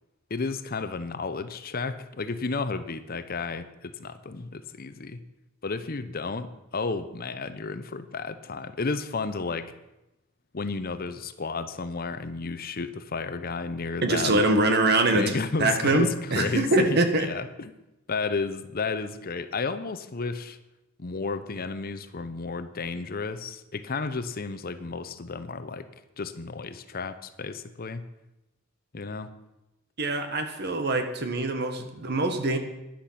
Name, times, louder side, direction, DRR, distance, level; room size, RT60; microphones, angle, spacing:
voice 1, 0.3-5.2 5.6-9.7 10.5-14.5 15.1-17.7 18.1-20.6 21.0-25.9 26.2-28.0 28.9-29.3, left 4 dB, 45° left, 11 dB, 0.8 m, -32 dB
voice 2, 14.0-17.3 30.0-32.6, right 2 dB, 50° right, 6 dB, 1.6 m, -24 dB
13.5 x 10.5 x 5.8 m, 0.94 s
head